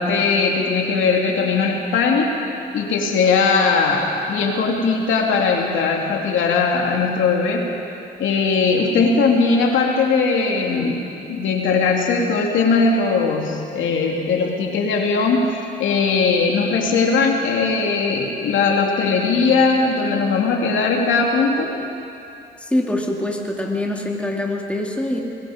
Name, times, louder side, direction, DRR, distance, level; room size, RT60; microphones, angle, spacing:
voice 1, 0.0-2.3 2.7-7.7 8.2-15.5 15.8-21.7, left 4 dB, 75° left, 0 dB, 2.8 m, -19 dB
voice 2, 22.6-25.2, left 1 dB, 5° left, 0 dB, 2.7 m, -24 dB
23.0 x 22.0 x 5.1 m, 2.7 s
cardioid pair, 90°, 20 cm